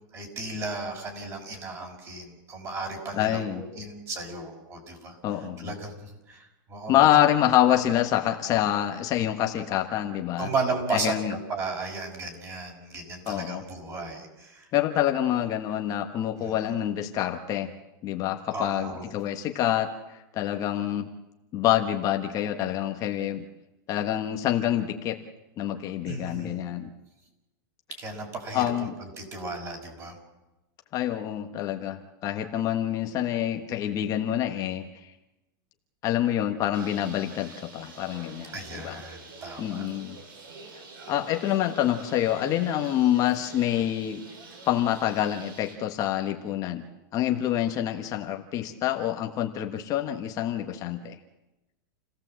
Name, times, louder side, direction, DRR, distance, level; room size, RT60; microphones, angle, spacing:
voice 1, 0.1-5.2 5.6-7.0 10.4-14.7 16.4-16.5 18.5-19.0 26.0-26.6 28.0-30.2 38.5-39.9, right 3 dB, 25° right, 3 dB, 5.7 m, -35 dB
voice 2, 3.1-3.6 5.2-5.7 6.9-10.5 10.9-11.4 13.3-13.6 14.7-17.7 18.0-21.1 21.5-23.4 23.9-25.2 25.6-26.9 28.5-28.9 30.9-35.1 36.0-39.0 39.6-40.2 41.1-44.2 44.7-46.9 47.1-51.2, left 12 dB, 30° left, 4 dB, 1.3 m, -26 dB
Bird, 36.7-45.8, right 3 dB, 85° right, 6.9 m, -46 dB
29.0 x 17.0 x 7.7 m, 1.0 s
supercardioid pair, 155°, 11 cm